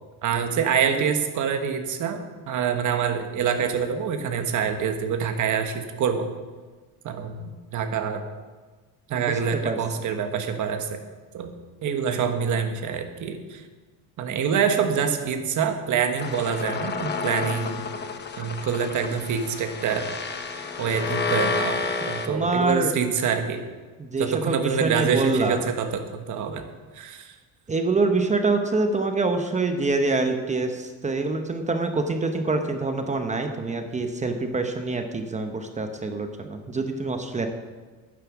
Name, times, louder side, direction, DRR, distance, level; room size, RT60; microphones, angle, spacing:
voice 1, 0.2-6.3 7.0-8.2 9.1-11.0 11.3-11.5 11.8-13.6 14.2-17.8 18.4-20.1 20.8-21.8 22.1-23.6 24.2-26.7 26.9-27.3, right 7 dB, 50° right, 6 dB, 1.4 m, -26 dB
voice 2, 9.1-9.8 22.3-22.9 24.0-25.6 27.7-37.5, right 3 dB, 20° right, 6 dB, 0.9 m, -25 dB
sound 1, 16.2-22.3, left 4 dB, 25° left, 1.0 m, -30 dB
10.5 x 9.6 x 6.1 m, 1.4 s
cardioid pair, 140°, 38 cm